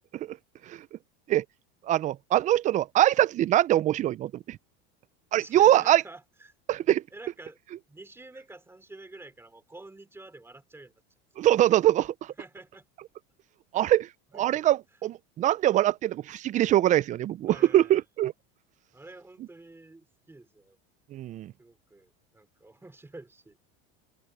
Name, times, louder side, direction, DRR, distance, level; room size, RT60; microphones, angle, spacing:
voice 1, 1.9-4.6 5.3-6.0 6.7-7.0 11.4-12.1 13.7-14.1 14.3-18.3 21.1-21.5, right 13 dB, 25° right, 0.4 m, -23 dB
voice 2, 5.3-6.5 7.1-7.6 7.9-10.9 12.4-12.8 14.3-14.6 17.5-18.0 18.9-20.8 21.6-23.6, right 2 dB, 10° right, 3.0 m, -48 dB
supercardioid pair, 125°, 30 cm